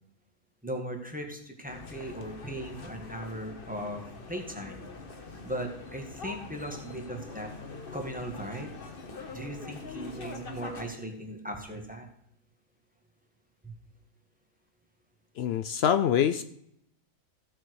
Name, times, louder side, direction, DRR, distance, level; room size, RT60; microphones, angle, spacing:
voice 1, 0.6-4.0 4.3-4.8 5.4-7.5 7.9-8.7 9.3-12.1, right 1 dB, 5° right, 2 dB, 1.7 m, -38 dB
sound 1, 1.7-10.9, left 3 dB, 40° left, 1.3 m, -43 dB
voice 2, 15.4-16.4, left 9 dB, 85° left, 11 dB, 0.5 m, -25 dB
15.5 x 7.0 x 4.7 m, 0.74 s
omnidirectional pair, 1.6 m